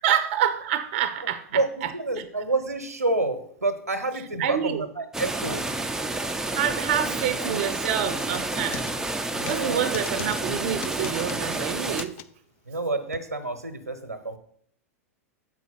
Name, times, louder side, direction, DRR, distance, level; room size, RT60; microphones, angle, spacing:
voice 1, 0.0-2.3 4.4-4.8 6.4-8.9 9.5-12.2, right 9 dB, 50° right, 0.6 m, -27 dB
voice 2, 1.5-5.6 7.0-7.6 9.3-9.8 12.7-14.4, right 2 dB, 85° right, 0.8 m, -29 dB
sound 1, 5.1-12.0, right 2 dB, 5° right, 0.5 m, -30 dB
sound 2, 8.3-8.9 9.5-9.6 9.9-10.4 10.8-11.5 12.0-12.2 13.1-13.2, left 12 dB, 50° left, 0.5 m, -38 dB
7.3 x 5.0 x 5.6 m
figure-of-eight pair, 95°, 8 cm